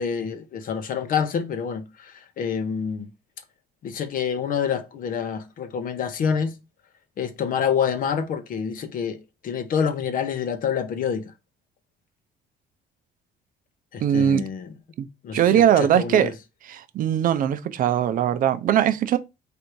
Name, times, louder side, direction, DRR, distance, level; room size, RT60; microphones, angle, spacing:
voice 1, 0.0-3.1 3.8-6.5 7.2-11.3 13.9-14.7 15.2-16.3, left 7 dB, 55° left, 0.7 m, -27 dB
voice 2, 14.0-14.5 15.0-15.1 15.3-16.3 16.7-19.2, right 10 dB, 55° right, 0.5 m, -20 dB
3.3 x 2.6 x 4.6 m
cardioid pair, 110°, 17 cm